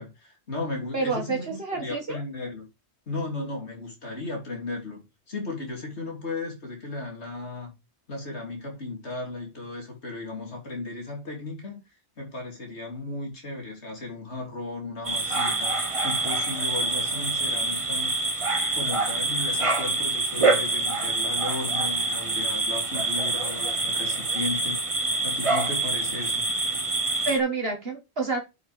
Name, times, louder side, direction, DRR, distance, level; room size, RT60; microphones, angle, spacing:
voice 1, 0.0-2.7 3.1-7.7 8.1-11.8 12.2-18.4 18.7-24.8 25.2-26.4, left 2 dB, 80° left, 3.6 m, -35 dB
voice 2, 0.9-2.2 27.3-28.4, right 3 dB, 60° right, 2.1 m, -28 dB
sound 1, 15.0-27.4, right 3 dB, 30° right, 1.4 m, -26 dB
7.9 x 6.2 x 5.1 m
omnidirectional pair, 1.1 m